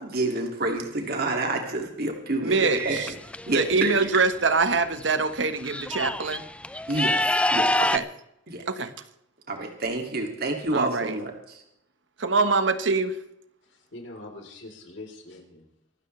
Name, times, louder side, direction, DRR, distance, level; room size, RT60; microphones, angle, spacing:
voice 1, 0.0-3.0 3.4-4.1 6.9-7.7 8.5-8.6 9.5-11.6, right 2 dB, 55° right, 2.4 m, -28 dB
voice 2, 2.4-3.1 3.5-6.4 7.9-8.0 8.7-8.9 10.7-11.1 12.2-13.2, right 4 dB, 75° right, 1.3 m, -24 dB
sound 1, 2.8-3.8 5.0-5.1 5.4-8.0, left 1 dB, 5° left, 0.5 m, -26 dB
voice 3, 13.6-15.7, left 2 dB, 70° left, 3.8 m, -43 dB
25.0 x 13.0 x 3.3 m
head